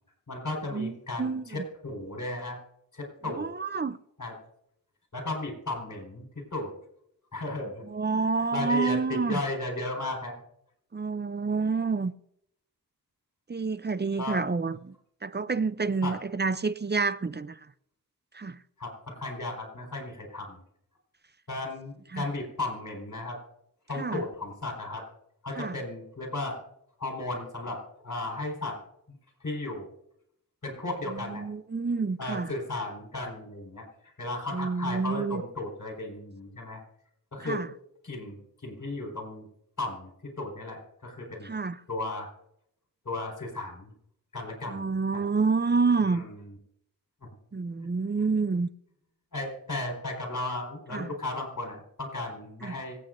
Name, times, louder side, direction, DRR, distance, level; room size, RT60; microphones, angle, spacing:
voice 1, 0.3-2.6 2.9-3.5 4.2-4.3 5.1-6.7 7.3-7.9 8.1-10.4 14.2-14.4 16.0-16.2 18.8-20.6 21.5-23.4 23.9-25.1 25.4-26.6 27.0-28.8 29.4-29.9 30.6-31.4 32.2-36.8 37.3-37.6 38.0-39.5 39.8-40.1 40.4-41.5 41.9-42.3 43.0-43.9 44.3-44.9 45.1-45.2 46.0-46.6 47.2-47.3 49.3-53.0, left 2 dB, 55° left, 4.5 m, -35 dB
voice 2, 1.2-1.6 3.4-4.0 7.9-9.4 10.9-12.1 13.5-14.9 15.2-17.6 18.3-18.6 22.1-22.2 24.0-24.2 25.6-25.7 31.1-32.5 34.5-35.4 37.4-37.7 41.4-41.8 44.7-46.2 47.5-48.7 50.9-51.1 52.6-52.7, right 4 dB, 30° right, 0.5 m, -28 dB
25.5 x 8.5 x 2.6 m
cardioid pair, 55°, 35 cm